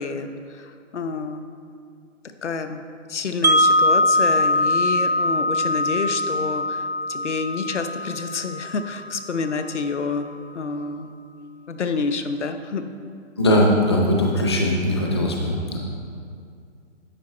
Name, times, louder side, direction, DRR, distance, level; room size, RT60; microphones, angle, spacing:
voice 1, 0.0-1.5 2.4-2.8 3.1-10.3 10.5-11.1 11.7-12.8, left 4 dB, 65° left, 8 dB, 0.9 m, -28 dB
Wind chime, 3.4-9.4, left 1 dB, 35° right, 0.4 m, -22 dB
voice 2, 13.4-15.8, left 1 dB, 20° left, -1 dB, 0.7 m, -20 dB
11.5 x 7.7 x 4.3 m, 2.3 s
hypercardioid pair, 170°, 38 cm